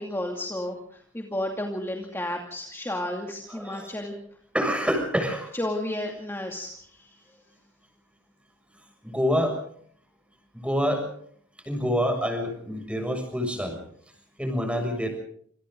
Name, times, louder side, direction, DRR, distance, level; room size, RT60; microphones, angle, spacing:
voice 1, 0.0-4.2 5.5-7.2, left 1 dB, 15° left, 1 dB, 2.6 m, -32 dB
voice 2, 3.5-3.9 4.5-5.5 9.0-9.6 10.5-11.0 11.7-13.8 14.4-15.1, equal, 5° right, 5 dB, 7.0 m, -26 dB
27.5 x 27.5 x 3.9 m, 0.62 s
head